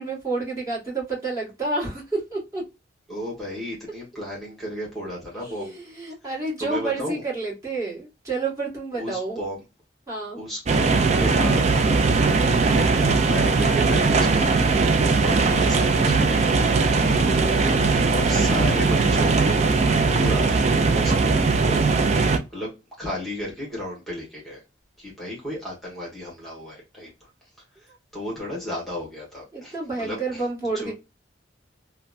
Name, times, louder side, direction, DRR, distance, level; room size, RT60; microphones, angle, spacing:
voice 1, 0.0-2.6 5.3-9.4 10.1-10.4 17.2-18.1 29.5-30.9, right 3 dB, 20° right, 1.8 m, -30 dB
voice 2, 3.1-5.8 6.6-7.2 9.0-9.6 10.3-12.0 12.7-14.7 15.2-16.5 17.0-17.4 17.7-19.7 20.1-21.8 22.1-24.6 25.0-27.3 27.7-30.4 30.7-30.9, left 1 dB, ahead, 1.4 m, -34 dB
sound 1, 10.7-22.4, right 4 dB, 35° right, 0.4 m, -20 dB
3.2 x 2.2 x 2.5 m
head